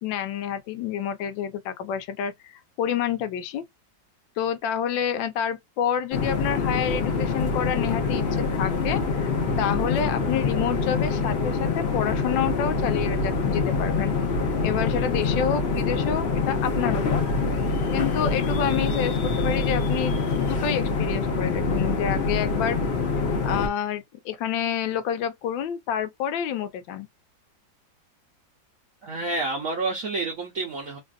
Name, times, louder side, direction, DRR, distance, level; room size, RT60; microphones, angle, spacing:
voice 1, 0.0-2.5 2.8-3.7 4.4-9.3 9.6-14.1 14.6-17.2 17.9-22.8 23.4-27.1, left 8 dB, 80° left, 1.3 m, -28 dB
sound 1, 6.1-23.7, left 4 dB, 55° left, 0.7 m, -25 dB
voice 2, 29.0-31.0, right 3 dB, 60° right, 0.9 m, -29 dB
3.3 x 2.5 x 2.3 m
omnidirectional pair, 2.0 m